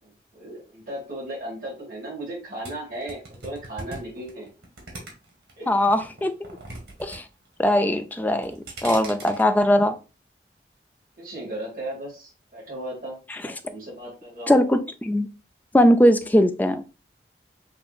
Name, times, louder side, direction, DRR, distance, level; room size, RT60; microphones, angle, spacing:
voice 1, 0.0-4.5 5.6-5.8 11.2-13.2 13.4-14.5, right 1 dB, 50° right, 2.0 m, -36 dB
sound 1, 2.6-5.5 5.9-7.2 7.5-7.9 8.3-9.4, right 2 dB, 85° right, 2.0 m, -40 dB
voice 2, 5.7-6.5 7.0-7.2 7.6-10.0 14.5-15.3 15.7-16.8, left 1 dB, 10° left, 0.4 m, -20 dB
7.0 x 2.8 x 2.4 m
head